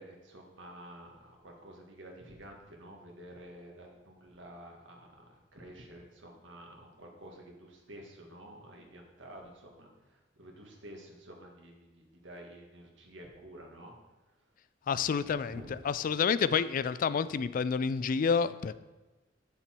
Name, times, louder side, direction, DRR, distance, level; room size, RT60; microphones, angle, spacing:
voice 1, 0.0-13.9 15.2-15.7, right 1 dB, 75° right, 1 dB, 1.7 m, -50 dB
voice 2, 14.9-18.7, left 6 dB, 45° left, 15 dB, 0.3 m, -29 dB
7.9 x 6.9 x 4.4 m, 1.2 s
head